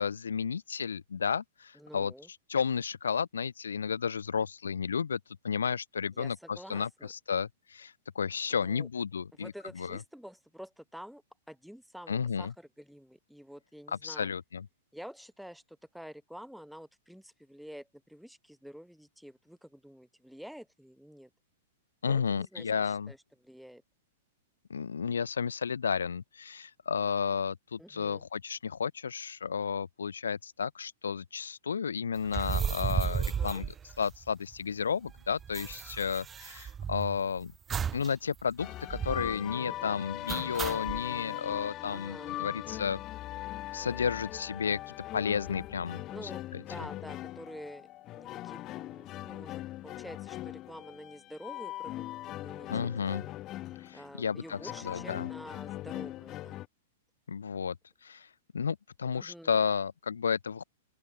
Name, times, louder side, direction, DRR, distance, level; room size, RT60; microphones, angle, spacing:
voice 1, 0.0-2.1 2.5-5.2 5.4-10.0 12.1-12.5 14.0-14.7 22.0-23.1 24.7-37.5 37.9-43.0 43.7-46.0 46.5-46.6 52.7-53.2 53.8-54.6 54.8-55.3 57.3-57.8 58.0-58.3 58.5-60.6, left 6 dB, 85° left, 0.6 m, -32 dB
voice 2, 1.7-2.3 6.1-7.1 8.5-8.9 9.4-14.3 14.9-21.3 22.0-23.2 23.4-23.8 27.8-28.2 33.2-33.6 39.7-40.0 41.9-42.4 46.1-52.9 53.3-53.4 53.9-56.6 59.1-59.5, equal, ahead, 4.4 m, -49 dB
sound 1, 32.2-34.5 34.8-34.9 35.1-37.2 37.7-38.1 38.4-38.5 38.9-39.4 40.3-41.0, right 7 dB, 20° right, 0.4 m, -34 dB
sound 2, 38.6-56.7, left 15 dB, 35° left, 1.5 m, -40 dB
open air
hypercardioid pair, 110°, 0 cm